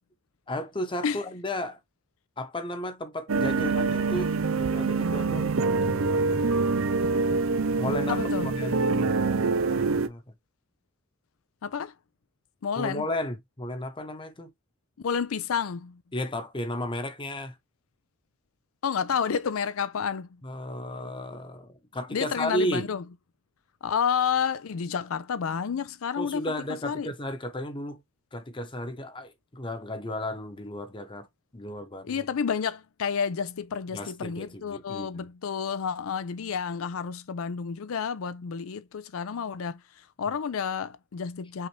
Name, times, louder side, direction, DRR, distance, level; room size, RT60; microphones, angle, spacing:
voice 1, 0.5-1.8 2.4-5.5 5.9-6.7 7.7-9.1 9.9-10.3 12.8-14.5 16.1-17.6 20.4-22.9 26.2-28.0 28.3-31.3 31.5-32.3 33.9-35.3 40.3-40.4, left 1 dB, 25° left, 0.8 m, -34 dB
sound 1, 3.3-10.1, right 4 dB, 70° right, 0.6 m, -25 dB
voice 2, 8.1-8.5 11.6-11.9 12.6-13.0 15.0-16.0 18.8-20.3 22.1-23.0 23.8-26.4 26.8-27.1 32.0-39.8 40.2-41.7, left 6 dB, 90° left, 0.5 m, -30 dB
5.7 x 2.6 x 3.2 m
head